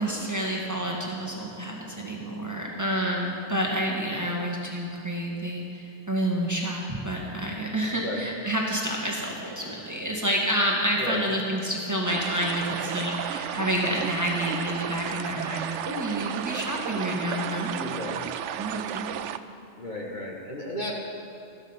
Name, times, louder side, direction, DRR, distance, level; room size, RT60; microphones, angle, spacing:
voice 1, 0.0-17.9 18.6-19.1, equal, 15° right, -2 dB, 1.9 m, -29 dB
voice 2, 7.9-8.3 11.0-11.3 17.8-18.2 19.1-19.2 19.8-21.0, left 1 dB, 40° left, -2 dB, 1.9 m, -34 dB
sound 1, 12.1-19.4, right 10 dB, 90° right, 0.9 m, -33 dB
14.5 x 12.5 x 5.7 m, 2.8 s
omnidirectional pair, 1.2 m